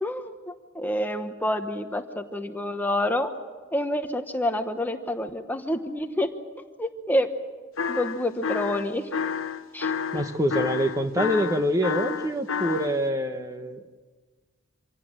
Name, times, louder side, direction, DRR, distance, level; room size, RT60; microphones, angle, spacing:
voice 1, 0.0-3.3 3.7-6.3 6.8-7.3 7.9-9.1 9.7-10.2, left 1 dB, 10° left, 7 dB, 1.0 m, -28 dB
sound 1, 7.8-12.9, left 6 dB, 80° left, 0.9 m, -30 dB
voice 2, 10.1-13.8, equal, 15° right, 7 dB, 1.0 m, -25 dB
26.0 x 17.0 x 8.9 m, 1.4 s
head